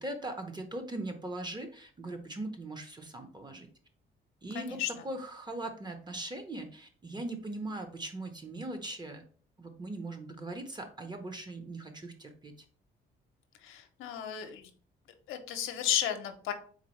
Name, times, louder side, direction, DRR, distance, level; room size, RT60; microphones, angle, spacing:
voice 1, 0.0-3.7 4.4-9.2 9.6-12.5, right 2 dB, 20° right, 6 dB, 0.8 m, -40 dB
voice 2, 4.5-4.9 13.6-14.7 15.3-16.5, left 10 dB, 90° left, 6 dB, 0.7 m, -33 dB
4.1 x 3.4 x 3.1 m, 0.44 s
cardioid pair, 90°, 20 cm